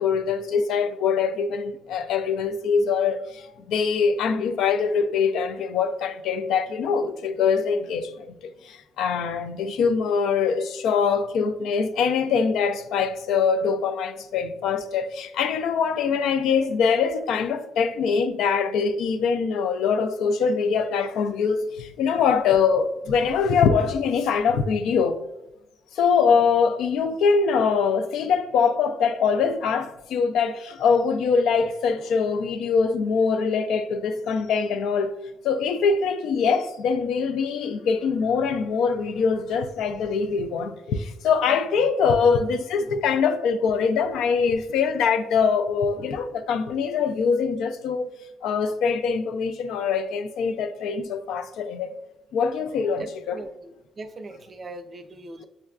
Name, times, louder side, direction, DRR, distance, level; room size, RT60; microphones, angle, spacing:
voice 1, 0.0-8.3 8.6-25.2 26.0-35.1 35.4-48.1 48.4-51.9 52.3-53.4, left 5 dB, 85° left, 0.3 m, -23 dB
voice 2, 53.3-55.4, right 2 dB, 40° right, 0.4 m, -40 dB
6.3 x 2.3 x 2.3 m
cardioid pair, 90°, 0 cm